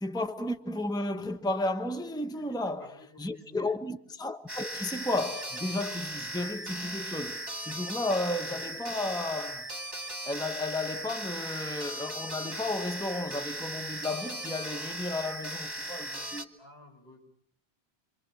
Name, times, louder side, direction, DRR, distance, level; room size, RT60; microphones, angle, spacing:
voice 1, 0.0-9.7 10.2-16.5, left 2 dB, 5° left, 1.1 m, -33 dB
voice 2, 2.3-3.8 16.6-17.2, left 1 dB, 75° left, 7.1 m, -54 dB
sound 1, 4.5-16.4, right 1 dB, 20° right, 2.6 m, -38 dB
27.5 x 25.0 x 7.6 m
omnidirectional pair, 1.1 m